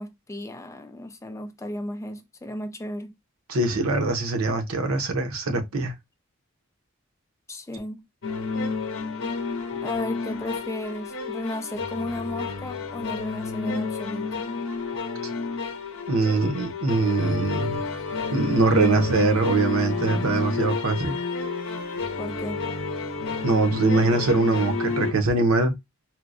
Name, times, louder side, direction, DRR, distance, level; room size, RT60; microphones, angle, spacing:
voice 1, 0.0-3.1 7.5-8.0 9.8-14.4 22.2-22.6, left 1 dB, 15° left, 0.4 m, -34 dB
voice 2, 3.5-5.9 16.1-17.8 18.3-21.2 23.4-25.7, right 3 dB, 85° right, 0.8 m, -22 dB
sound 1, 8.2-25.1, left 4 dB, 70° left, 0.7 m, -30 dB
4.4 x 2.1 x 2.5 m
head